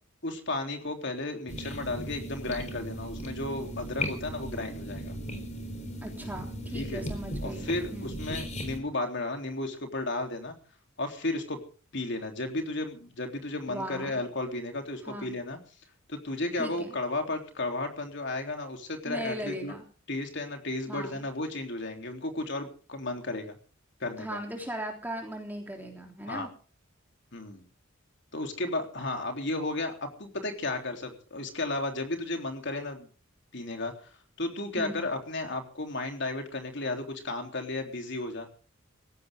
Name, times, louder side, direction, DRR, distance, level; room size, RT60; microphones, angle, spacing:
voice 1, 0.2-5.1 6.7-7.0 7.4-10.5 11.0-11.6 11.9-15.6 16.1-19.7 20.1-23.5 24.0-24.4 26.3-26.5 27.3-27.6 28.3-33.1 33.5-34.1 34.4-38.5, left 2 dB, 60° left, 4 dB, 3.5 m, -33 dB
sound 1, 1.5-8.8, equal, 35° left, 3.9 m, -37 dB
voice 2, 6.0-8.2 13.7-14.2 15.1-15.3 16.6-17.0 19.0-19.8 20.9-21.2 24.2-26.5 34.8-35.1, right 1 dB, 10° right, 1 dB, 3.4 m, -38 dB
20.0 x 16.0 x 3.7 m, 0.39 s
head